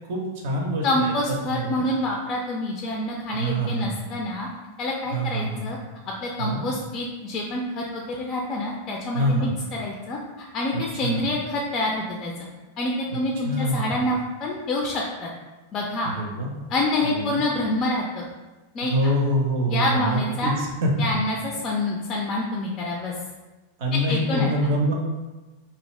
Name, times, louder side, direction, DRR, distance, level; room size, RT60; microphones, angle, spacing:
voice 1, 0.1-1.8 3.3-4.1 5.1-5.7 6.4-6.6 9.1-9.6 10.7-11.3 13.4-14.0 16.0-16.5 17.0-17.3 18.9-21.1 23.8-24.9, equal, 50° right, 0 dB, 0.6 m, -25 dB
voice 2, 0.8-4.5 4.8-5.8 6.1-12.3 12.8-15.3 15.7-16.1 16.7-18.3 18.7-19.1 19.7-20.5 21.0-23.1 23.9-24.7, left 1 dB, 30° left, -1 dB, 0.4 m, -27 dB
2.6 x 2.4 x 3.1 m, 1.2 s
figure-of-eight pair, 90°, 0 cm